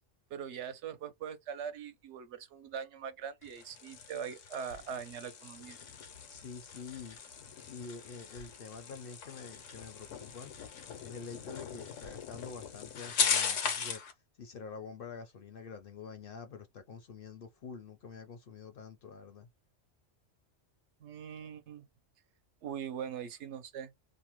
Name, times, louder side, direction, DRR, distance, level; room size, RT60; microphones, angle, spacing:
voice 1, 0.3-5.8 21.0-21.9 22.6-23.9, right 7 dB, 75° right, 0.8 m, -41 dB
sound 1, 3.4-14.1, left 7 dB, 85° left, 1.1 m, -38 dB
voice 2, 6.3-7.2 7.7-10.5 11.0-14.0 14.4-19.5, left 5 dB, 60° left, 0.6 m, -47 dB
2.6 x 2.1 x 2.9 m
omnidirectional pair, 1.2 m